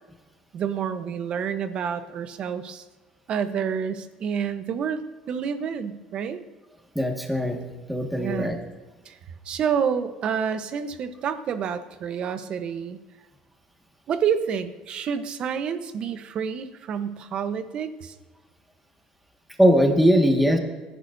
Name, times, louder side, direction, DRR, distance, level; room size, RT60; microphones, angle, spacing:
voice 1, 0.5-2.8 3.3-6.4 8.2-8.6 9.0-9.2 9.4-13.0 14.1-18.1, right 7 dB, 45° right, 10 dB, 1.0 m, -28 dB
voice 2, 7.0-7.6 7.9-8.6 19.6-20.6, equal, 5° right, 2 dB, 1.8 m, -20 dB
27.0 x 11.0 x 2.7 m, 1.3 s
cardioid pair, 130°, 2 cm